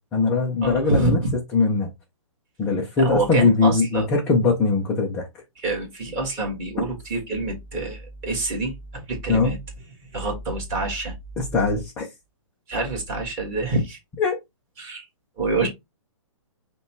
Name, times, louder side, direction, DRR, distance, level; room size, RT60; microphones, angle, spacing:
voice 1, 0.1-1.2 1.5-1.9 2.6-5.3 9.3-9.6 11.4-12.1 14.2-14.4, left 4 dB, 5° left, 0.3 m, -21 dB
voice 2, 0.6-1.3 3.0-4.1 5.6-9.6 10.1-11.1 12.7-14.0 14.8-15.1 15.4-15.7, right 2 dB, 20° right, 1.5 m, -26 dB
5.4 x 2.2 x 4.3 m
hypercardioid pair, 170°, 17 cm